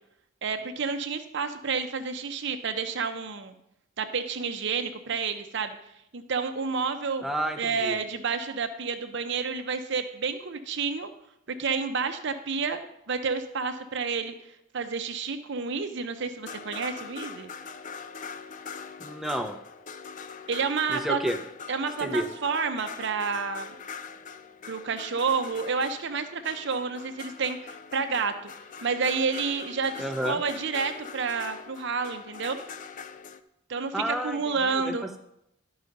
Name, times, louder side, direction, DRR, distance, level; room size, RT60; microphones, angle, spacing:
voice 1, 0.4-3.5 4.0-5.8 6.1-7.2 7.6-11.1 11.6-14.3 14.7-17.5 20.5-21.2 21.7-23.7 24.7-28.5 28.8-32.6 33.7-35.1, right 5 dB, 60° right, 7 dB, 0.7 m, -30 dB
voice 2, 7.2-8.0 19.0-19.6 20.9-21.4 22.0-22.3 30.0-30.4 33.9-35.2, equal, ahead, 4 dB, 0.7 m, -30 dB
sound 1, 16.2-33.4, left 5 dB, 40° left, 0.4 m, -43 dB
12.0 x 4.8 x 5.3 m, 0.81 s
head